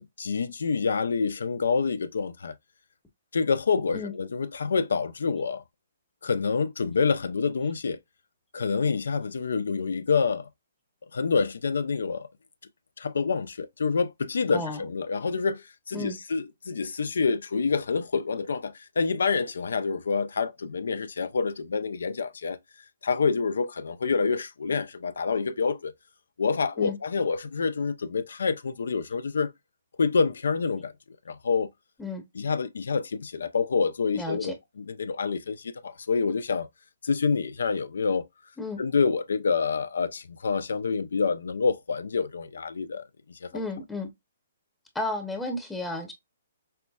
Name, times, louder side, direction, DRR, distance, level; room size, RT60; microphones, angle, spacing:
voice 1, 0.0-2.5 3.3-5.6 6.2-8.0 8.5-10.5 11.1-12.3 13.0-22.6 23.0-25.9 26.4-29.5 30.0-30.9 31.3-31.7 32.3-36.7 37.0-38.2 38.8-43.0 43.3-43.7, left 5 dB, 80° left, 0.5 m, -27 dB
voice 2, 34.1-34.6 38.6-38.8 43.5-44.1 44.9-46.1, left 2 dB, 5° left, 0.8 m, -33 dB
5.5 x 2.1 x 2.3 m
hypercardioid pair, 145°, 0 cm